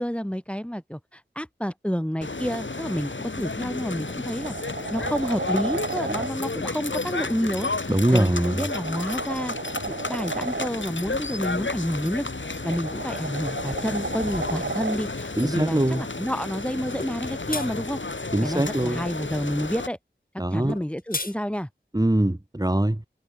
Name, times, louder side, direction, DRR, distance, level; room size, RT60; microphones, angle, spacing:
voice 1, 0.0-4.6 4.9-9.5 9.9-12.3 12.6-20.0 20.5-21.7, equal, 5° left, 7.0 m, -29 dB
sound 1, 2.2-19.9, left 3 dB, 80° left, 7.0 m, -32 dB
sound 2, 4.0-6.3 8.0-10.7 12.2-15.0 17.3-17.4, right 3 dB, 75° right, 2.6 m, -33 dB
voice 2, 7.9-8.6 15.4-16.0 18.3-19.0 20.4-20.8 21.9-23.0, right 1 dB, 20° right, 2.9 m, -23 dB
sound 3, 17.0-17.2 17.5-17.7 20.7-21.3, left 2 dB, 50° left, 2.0 m, -31 dB
wide cardioid pair, 55°, 19 cm